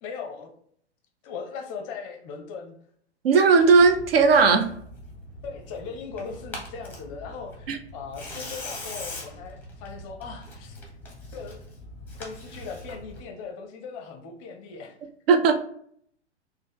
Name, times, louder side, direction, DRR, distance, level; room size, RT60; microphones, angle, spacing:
voice 1, 0.0-0.5 1.2-2.8 5.4-10.8 11.3-11.6 12.1-15.0, left 5 dB, 30° left, 3 dB, 0.6 m, -39 dB
voice 2, 3.2-4.7 7.7-7.8 15.3-15.5, right 4 dB, 60° right, 6 dB, 0.6 m, -17 dB
Tearing, 3.6-13.2, left 1 dB, 5° left, 0.9 m, -42 dB
5.0 x 2.1 x 3.4 m, 0.64 s
figure-of-eight pair, 110°, 34 cm